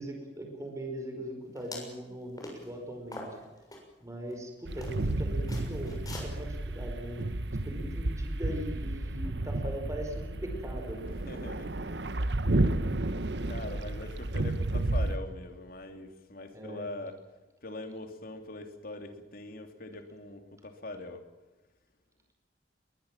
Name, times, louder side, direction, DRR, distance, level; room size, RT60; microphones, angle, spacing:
voice 1, 0.0-3.3 4.0-7.2 7.6-11.0 16.5-16.8, equal, 20° right, 3 dB, 4.9 m, -40 dB
sound 1, 1.6-2.0 2.4-2.7 3.1-3.8 4.3-4.4 4.8-5.1 5.5-6.3, left 2 dB, 20° left, 6.8 m, -42 dB
sound 2, 4.7-15.2, right 2 dB, 75° right, 1.2 m, -32 dB
voice 2, 11.1-12.1 13.5-17.2 17.6-21.3, left 2 dB, 55° left, 7 dB, 3.1 m, -42 dB
22.0 x 20.5 x 7.5 m, 1.1 s
head